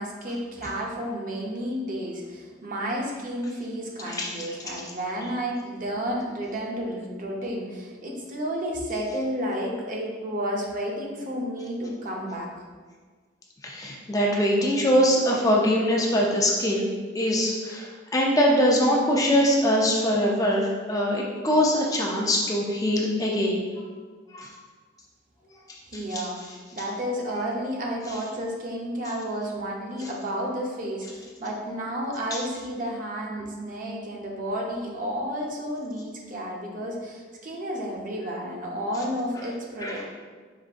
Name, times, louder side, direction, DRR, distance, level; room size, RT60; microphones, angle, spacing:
voice 1, 0.0-12.5 25.9-26.4 26.7-40.1, equal, 45° right, -1 dB, 0.7 m, -31 dB
voice 2, 4.1-4.5 13.6-23.6 24.3-24.5 26.1-26.2 32.3-32.4 39.8-40.1, equal, 20° left, -2 dB, 0.5 m, -23 dB
5.1 x 3.5 x 2.5 m, 1.5 s
head